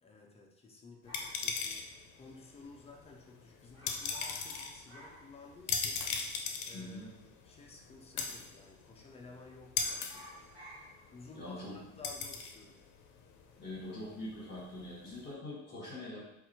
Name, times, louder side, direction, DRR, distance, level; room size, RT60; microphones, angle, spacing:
voice 1, 0.0-1.9 2.2-6.1 6.7-10.5 11.1-12.8, left 3 dB, 20° left, 0 dB, 0.6 m, -54 dB
sound 1, 1.0-15.3, left 5 dB, 70° left, 0.6 m, -40 dB
sound 2, 1.1-2.5 2.8-2.9 3.1-3.4 3.7-6.0 6.3-6.4 7.1-7.8 8.1-8.4 8.7-9.3 9.6-14.3 14.6-15.0, equal, 15° right, 1.3 m, -55 dB
voice 2, 6.7-7.1 11.3-11.8 13.6-16.2, left 1 dB, 35° left, -5 dB, 1.5 m, -43 dB
4.1 x 2.5 x 4.3 m, 0.84 s
cardioid pair, 150°, 31 cm